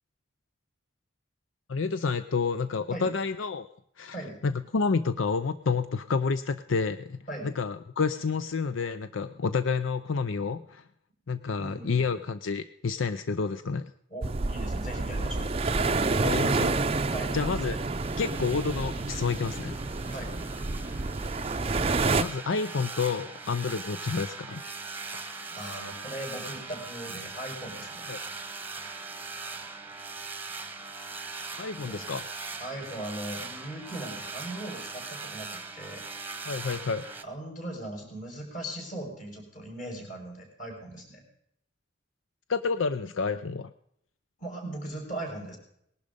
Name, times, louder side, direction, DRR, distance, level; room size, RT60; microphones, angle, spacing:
voice 1, 1.7-3.7 4.0-4.2 4.4-10.8 11.3-13.9 16.2-16.8 17.3-17.8 18.2-19.7 22.2-24.6 28.1-28.2 31.6-32.3 36.4-37.1 42.5-43.7, left 5 dB, 80° left, 12 dB, 0.6 m, -29 dB
voice 2, 11.6-12.2 14.1-15.5 17.1-17.4 20.1-20.3 25.5-28.1 31.7-32.1 32.6-36.0 37.2-41.2 44.4-45.6, right 1 dB, 40° left, 1 dB, 5.9 m, -39 dB
sound 1, 14.2-22.2, right 3 dB, 30° right, 0.5 m, -29 dB
sound 2, 18.0-37.2, right 4 dB, 10° right, 1.1 m, -40 dB
19.5 x 11.5 x 5.3 m, 0.74 s
head